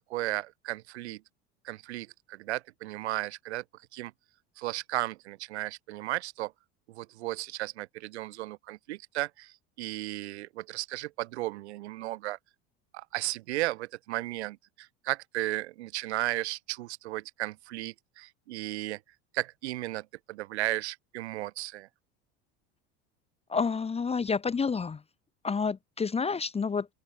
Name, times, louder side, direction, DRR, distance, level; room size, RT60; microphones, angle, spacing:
voice 1, 0.1-1.2 1.6-3.6 3.9-4.1 4.6-6.5 6.9-12.4 12.9-19.0 19.3-21.9, right 17 dB, 90° right, 2.0 m, -35 dB
voice 2, 23.5-25.0 25.4-26.9, left 5 dB, 20° left, 1.0 m, -29 dB
open air
supercardioid pair, 100°, 32 cm